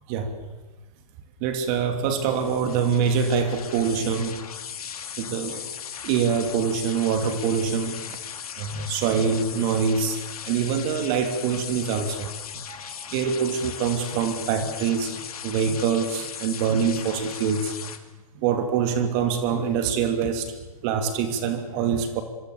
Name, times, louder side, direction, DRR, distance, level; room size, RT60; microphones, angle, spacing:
voice 1, 1.4-4.4 5.2-5.7 6.0-8.2 8.6-10.2 10.5-12.3 12.7-17.7 18.3-20.5 20.8-22.2, right 6 dB, 35° right, 7 dB, 2.8 m, -25 dB
sound 1, 2.3-18.0, left 8 dB, 70° left, 2.6 m, -38 dB
26.0 x 24.5 x 7.0 m, 1.1 s
hypercardioid pair, 130°, 19 cm